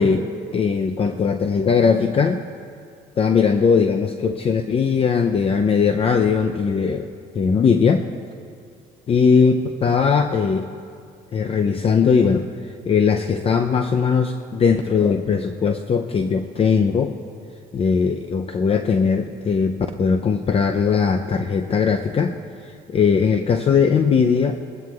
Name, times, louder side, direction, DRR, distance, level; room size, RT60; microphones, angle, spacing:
voice 1, 0.0-2.4 3.2-7.1 7.4-8.1 9.1-10.7 11.3-12.5 12.9-17.1 17.7-22.4 22.9-24.6, left 5 dB, 35° left, 6 dB, 0.5 m, -19 dB
20.5 x 15.0 x 2.4 m, 2.3 s
cardioid pair, 110°, 17 cm